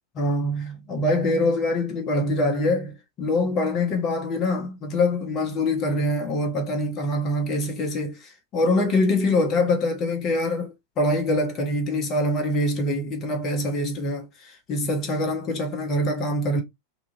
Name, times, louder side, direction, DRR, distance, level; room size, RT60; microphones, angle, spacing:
voice 1, 0.1-16.6, left 1 dB, 30° left, 0.9 m, -24 dB
2.9 x 2.5 x 2.6 m
figure-of-eight pair, 90°, 0 cm